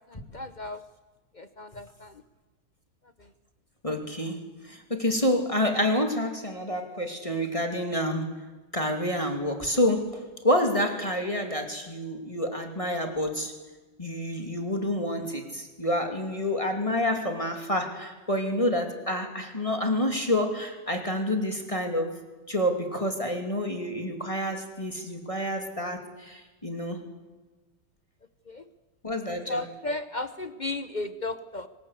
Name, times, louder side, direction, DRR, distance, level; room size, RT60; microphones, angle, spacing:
voice 1, 0.1-0.8 1.3-2.2 3.2-3.3 28.5-28.6 29.5-31.7, left 2 dB, 55° left, 11 dB, 0.5 m, -35 dB
voice 2, 3.8-8.4 8.7-13.5 14.0-22.1 22.5-27.0 29.0-29.6, left 1 dB, 15° left, 4 dB, 2.5 m, -28 dB
24.0 x 20.5 x 8.2 m, 1.2 s
omnidirectional pair, 2.1 m